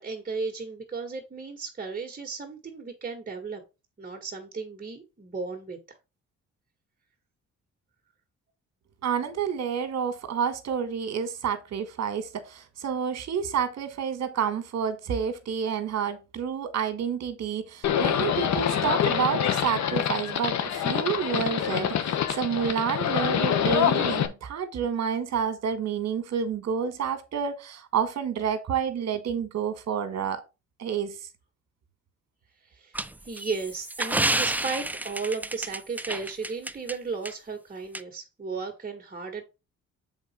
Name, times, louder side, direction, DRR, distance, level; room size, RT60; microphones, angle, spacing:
voice 1, 0.0-3.6 4.0-5.8 32.6-39.4, right 4 dB, 25° right, 1.7 m, -35 dB
voice 2, 9.0-30.4 30.8-31.2, right 7 dB, 60° right, 1.8 m, -29 dB
Livestock farm animals working animals, 17.8-24.3, left 9 dB, 65° left, 1.2 m, -26 dB
sound 1, 32.9-36.9 37.3-37.4 37.9-38.0, right 1 dB, 5° right, 0.4 m, -29 dB
7.4 x 4.2 x 4.4 m
cardioid pair, 90°, 30 cm